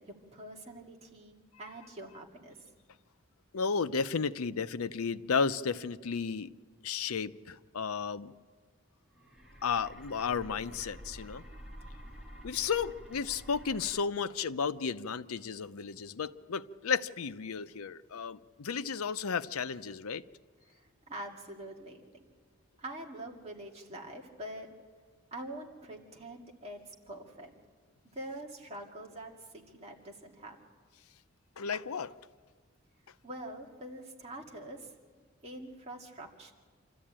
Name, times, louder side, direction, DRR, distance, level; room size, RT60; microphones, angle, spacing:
voice 1, 0.0-2.6 20.7-22.3 22.8-24.7 25.3-27.5 28.1-30.6 33.2-34.9 35.4-36.5, right 1 dB, 30° right, 0 dB, 2.2 m, -45 dB
voice 2, 3.5-6.5 6.8-8.3 9.6-11.4 12.4-20.2 31.6-32.1, left 5 dB, 90° left, 13 dB, 0.6 m, -33 dB
sound 1, 9.1-14.0, equal, ahead, 2.3 m, -49 dB
27.0 x 13.5 x 8.8 m, 1.5 s
head